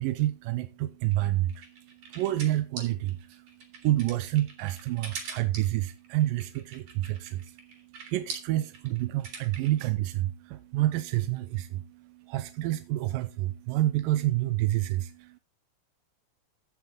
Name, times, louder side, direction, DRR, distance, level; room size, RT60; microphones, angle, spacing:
voice 1, 0.0-15.4, right 15 dB, 80° right, 2.2 m, -29 dB
sound 1, 1.1-9.8, right 5 dB, 60° right, 4.1 m, -43 dB
15.0 x 6.4 x 3.8 m
omnidirectional pair, 4.2 m